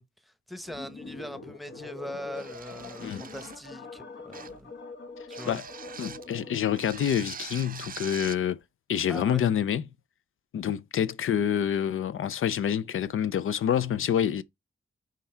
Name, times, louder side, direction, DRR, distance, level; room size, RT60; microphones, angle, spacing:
voice 1, 0.0-4.7 5.3-5.6 9.1-9.4, equal, ahead, 0.9 m, -41 dB
sound 1, 0.7-7.1, left 3 dB, 65° left, 1.3 m, -43 dB
sound 2, 2.3-3.7 4.3-4.7 5.3-6.3 6.7-8.4, right 7 dB, 45° right, 0.4 m, -43 dB
voice 2, 6.0-8.6 8.9-9.8 10.5-14.4, left 9 dB, 85° left, 0.5 m, -27 dB
5.6 x 4.6 x 4.4 m
wide cardioid pair, 85°, 21 cm